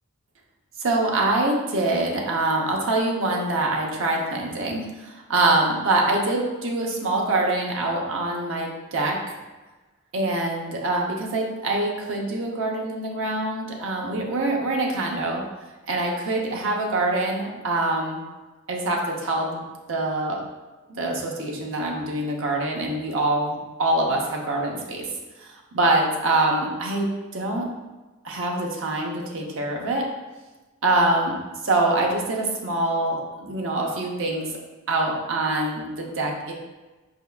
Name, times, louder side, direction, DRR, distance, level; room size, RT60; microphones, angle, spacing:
voice 1, 0.8-9.2 10.1-15.4 15.9-18.2 18.7-19.6 19.9-20.4 20.9-25.1 25.4-27.7 28.2-30.0 30.8-31.4 31.6-34.5 34.9-36.5, right 2 dB, 65° right, 0 dB, 0.7 m, -24 dB
4.6 x 3.5 x 2.3 m, 1.2 s
head